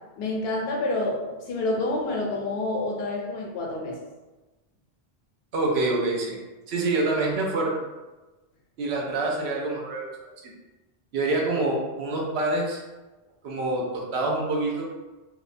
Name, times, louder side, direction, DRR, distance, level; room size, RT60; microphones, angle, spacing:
voice 1, 0.2-1.2 1.5-3.9, left 2 dB, 70° left, -1 dB, 0.8 m, -28 dB
voice 2, 5.5-6.4 6.7-7.8 8.8-10.1 10.4-10.5 11.1-12.8 13.4-14.9, right 2 dB, 75° right, -1 dB, 0.8 m, -26 dB
2.8 x 2.0 x 2.5 m, 1.2 s
omnidirectional pair, 1.1 m